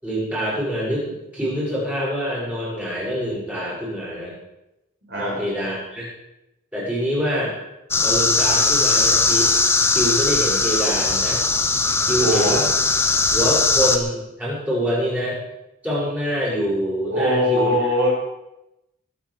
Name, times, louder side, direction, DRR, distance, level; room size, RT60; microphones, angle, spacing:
voice 1, 0.0-4.3 5.1-6.1 6.7-7.5 8.0-9.5 9.9-11.4 12.0-12.7 13.3-15.4 15.8-17.7, equal, 5° right, -7 dB, 6.5 m, -25 dB
voice 2, 5.1-5.4 12.2-12.6 17.1-18.1, equal, 50° right, -3 dB, 5.8 m, -21 dB
sound 1, 7.9-14.0, left 3 dB, 10° left, 0.9 m, -19 dB
21.0 x 8.8 x 5.0 m, 0.93 s
head